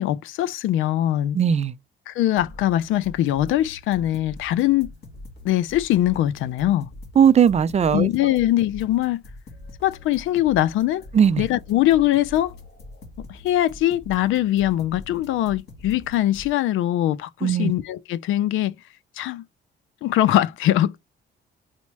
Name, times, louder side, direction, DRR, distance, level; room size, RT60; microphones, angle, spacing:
voice 1, 0.0-1.4 2.1-4.9 5.4-6.9 7.9-9.2 9.8-11.0 11.4-12.5 13.3-18.8 19.2-19.4 20.0-21.0, left 13 dB, 85° left, 0.4 m, -22 dB
voice 2, 1.3-1.7 7.2-8.1 11.1-11.4 17.4-17.7, right 8 dB, 35° right, 0.3 m, -18 dB
sound 1, 2.4-16.5, left 2 dB, 60° left, 1.9 m, -43 dB
4.1 x 2.1 x 4.5 m
cardioid pair, 90°, 20 cm